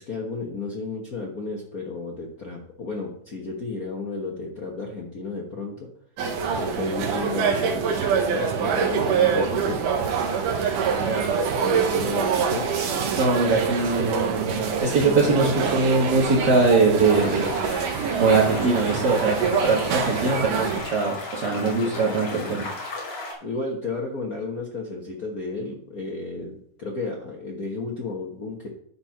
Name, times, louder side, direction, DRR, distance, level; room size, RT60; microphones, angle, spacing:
voice 1, 0.0-5.9 6.5-9.8 11.6-12.7 15.0-15.5 21.8-22.7 23.4-26.5 26.8-28.7, left 3 dB, 90° left, -2 dB, 0.7 m, -33 dB
sound 1, 6.2-20.8, right 6 dB, 80° right, 2.8 m, -25 dB
voice 2, 11.0-11.3 13.1-17.5 18.1-22.6, right 3 dB, 45° right, -4 dB, 1.6 m, -22 dB
sound 2, 17.1-23.3, left 2 dB, 50° left, 3.1 m, -35 dB
10.5 x 4.5 x 5.8 m, 0.65 s
omnidirectional pair, 3.7 m